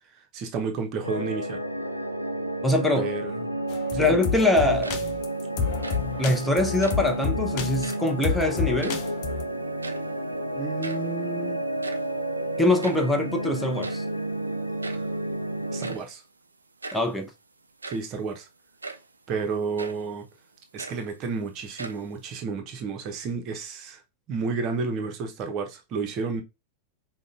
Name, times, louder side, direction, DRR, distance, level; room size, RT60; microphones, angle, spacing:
voice 1, 0.3-1.6 3.0-3.5 3.9-4.2 10.5-11.6 14.9-15.0 15.7-16.2 17.9-18.5 19.3-20.3 20.7-24.0 24.3-26.4, right 4 dB, 35° right, 0.8 m, -31 dB
sound 1, 1.0-15.9, right 1 dB, 85° left, 0.4 m, -31 dB
voice 2, 2.6-3.1 4.0-5.0 6.2-9.0 12.6-14.0 16.9-17.3, left 2 dB, 5° left, 0.8 m, -23 dB
sound 2, 3.7-9.4, left 6 dB, 45° left, 0.6 m, -30 dB
sound 3, 4.6-5.3 5.6-6.2 6.7-7.2 7.7-8.2 8.5-9.4 9.6-10.3 10.5-10.6 10.8-11.2 11.6-13.2 13.8-14.2 14.8-15.2 15.8-16.1 16.8-17.1 17.6-18.2 18.8-19.1 19.8-20.1 20.5-21.4 21.8-22.4, right 3 dB, 80° right, 0.4 m, -40 dB
5.1 x 2.2 x 2.5 m
figure-of-eight pair, 90°, 0 cm